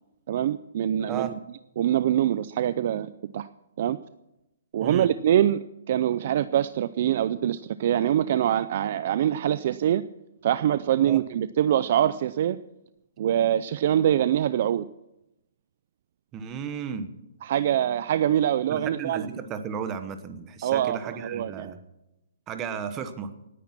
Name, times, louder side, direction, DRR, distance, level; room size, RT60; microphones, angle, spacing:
voice 1, 0.3-1.3 1.8-3.5 3.8-4.0 4.7-10.0 10.4-12.6 13.2-14.9 17.4-19.3 20.6-21.7, right 11 dB, 40° right, 15 dB, 0.4 m, -24 dB
voice 2, 16.3-17.1 18.7-21.8 22.5-23.3, right 7 dB, 15° right, 10 dB, 1.1 m, -34 dB
18.0 x 10.0 x 6.0 m, 0.90 s
hypercardioid pair, 170°, 0 cm